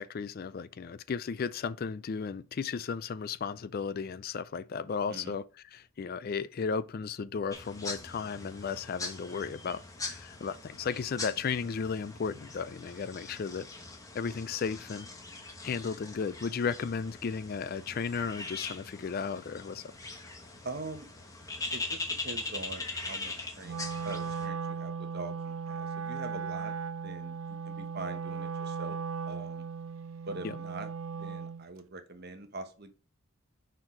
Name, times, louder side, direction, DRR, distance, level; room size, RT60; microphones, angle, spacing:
voice 1, 0.0-5.4 5.7-13.7 14.1-15.1 15.6-19.9 30.4-30.6, left 5 dB, 45° left, 0.3 m, -34 dB
sound 1, 7.5-24.5, left 3 dB, 15° left, 1.1 m, -41 dB
voice 2, 20.6-21.1 21.7-23.8 24.0-26.7 27.0-29.0 29.3-29.6 30.3-32.9, right 2 dB, 50° right, 1.1 m, -43 dB
Wind instrument woodwind instrument, 23.6-31.6, right 5 dB, 70° right, 0.5 m, -37 dB
6.2 x 4.6 x 4.7 m
head